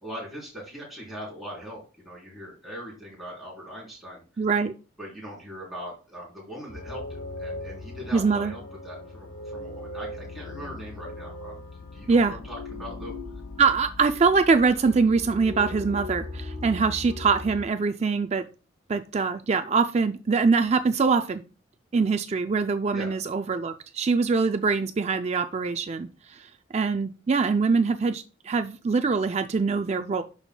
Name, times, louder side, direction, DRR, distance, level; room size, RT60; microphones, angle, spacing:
voice 1, 0.0-4.2 5.0-11.6 11.9-13.1 22.9-23.1, equal, ahead, -5 dB, 3.5 m, -40 dB
voice 2, 4.4-4.7 8.1-8.5 12.1-12.4 13.6-18.4 18.9-21.4 21.9-30.2, right 4 dB, 35° right, 8 dB, 0.3 m, -23 dB
sound 1, 6.7-17.7, left 2 dB, 65° left, 0.9 m, -38 dB
11.0 x 4.9 x 2.2 m, 0.35 s
head